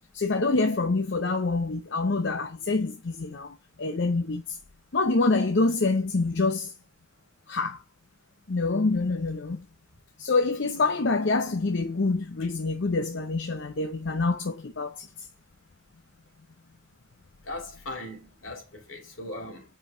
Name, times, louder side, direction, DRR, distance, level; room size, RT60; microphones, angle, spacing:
voice 1, 0.1-4.6 4.9-6.7 7.5-7.8 8.5-9.7 10.2-15.1, left 3 dB, 60° left, 0.7 m, -26 dB
voice 2, 17.5-19.6, left 1 dB, 75° left, 2.9 m, -39 dB
7.7 x 5.3 x 2.7 m
head